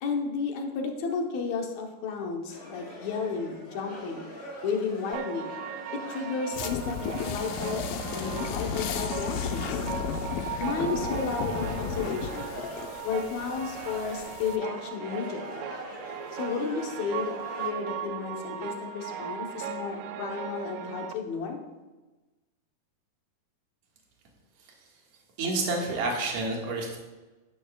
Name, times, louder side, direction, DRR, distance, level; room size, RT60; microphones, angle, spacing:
voice 1, 0.0-4.3 4.6-5.5 6.1-7.0 7.3-7.9 8.1-9.8 10.6-12.6 13.0-15.6 16.3-21.6, left 5 dB, 65° left, 2 dB, 2.2 m, -33 dB
sound 1, 2.5-17.7, equal, 35° left, 3.9 m, -43 dB
sound 2, 5.1-21.1, right 7 dB, 85° right, 1.6 m, -38 dB
sound 3, 6.5-14.6, left 7 dB, 85° left, 2.4 m, -34 dB
voice 2, 25.4-27.0, right 2 dB, 55° right, -1 dB, 2.6 m, -29 dB
12.0 x 10.5 x 2.4 m, 1.2 s
omnidirectional pair, 3.9 m